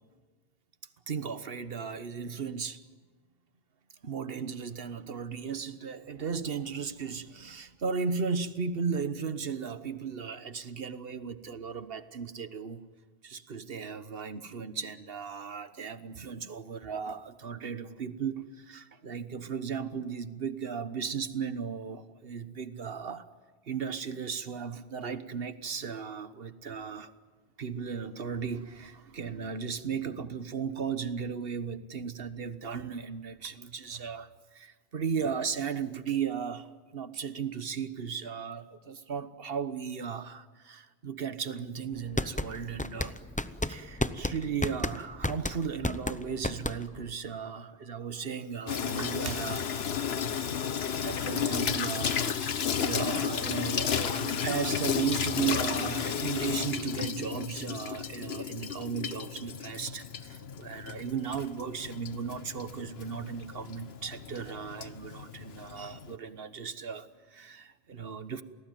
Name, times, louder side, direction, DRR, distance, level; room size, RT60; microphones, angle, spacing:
voice 1, 1.1-2.8 4.0-12.8 13.2-23.3 23.7-27.1 27.6-43.2 43.7-49.7 51.0-68.4, right 6 dB, 70° right, 1.3 m, -36 dB
sound 1, 41.9-47.1, left 1 dB, 10° left, 0.6 m, -32 dB
Water tap faucet / Sink (filling or washing), 48.7-66.1, left 7 dB, 80° left, 1.2 m, -33 dB
28.5 x 19.5 x 9.2 m
omnidirectional pair, 1.0 m